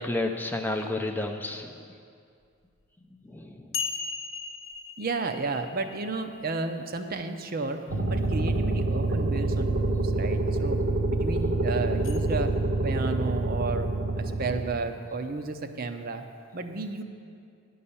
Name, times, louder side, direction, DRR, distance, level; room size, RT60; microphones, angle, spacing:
voice 1, 0.0-1.8 3.2-3.7, left 2 dB, 10° left, 4 dB, 0.5 m, -31 dB
sound 1, 2.8-2.9 3.7-7.4 12.0-12.2, left 5 dB, 60° left, 0.9 m, -37 dB
voice 2, 5.0-7.8 8.1-10.8 11.1-13.9 14.2-16.2 16.5-17.0, right 3 dB, 45° right, 7 dB, 0.6 m, -32 dB
sound 2, 7.9-14.7, right 2 dB, 85° right, 1.3 m, -26 dB
10.5 x 5.5 x 8.6 m, 2.3 s
head